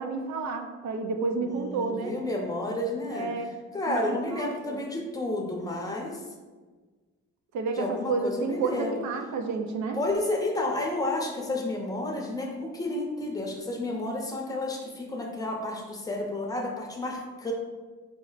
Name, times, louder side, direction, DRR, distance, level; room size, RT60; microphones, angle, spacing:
voice 1, 0.0-2.1 3.1-3.5 3.9-4.8 7.5-10.0, right 4 dB, 70° right, 5 dB, 0.6 m, -30 dB
voice 2, 1.4-3.3 3.7-6.2 7.8-8.9 9.9-17.5, left 2 dB, 10° left, 1 dB, 0.7 m, -31 dB
4.2 x 2.1 x 4.0 m, 1.4 s
cardioid pair, 90°, 30 cm